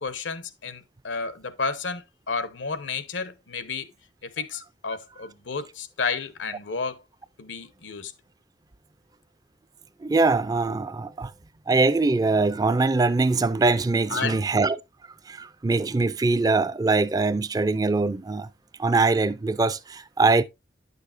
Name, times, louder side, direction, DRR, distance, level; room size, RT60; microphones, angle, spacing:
voice 1, 0.0-3.9 4.2-7.0 7.4-8.1 14.1-14.4, left 4 dB, 90° left, 1.0 m, -31 dB
voice 2, 10.0-11.3 11.7-14.8 15.3-18.5 18.8-20.4, right 3 dB, 20° right, 0.3 m, -22 dB
9.6 x 6.7 x 2.5 m
head